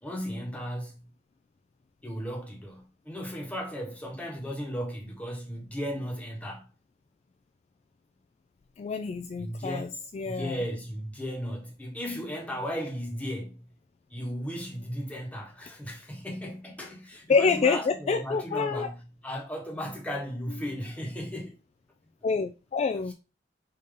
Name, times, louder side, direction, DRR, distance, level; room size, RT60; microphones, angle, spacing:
voice 1, 0.0-1.1 2.0-6.6 9.4-10.0 10.2-13.7 14.1-21.6, equal, 10° left, 1.2 m, -36 dB
voice 2, 8.8-10.6 17.3-18.9 22.2-23.1, left 5 dB, 40° left, 0.3 m, -27 dB
5.2 x 2.8 x 3.6 m
head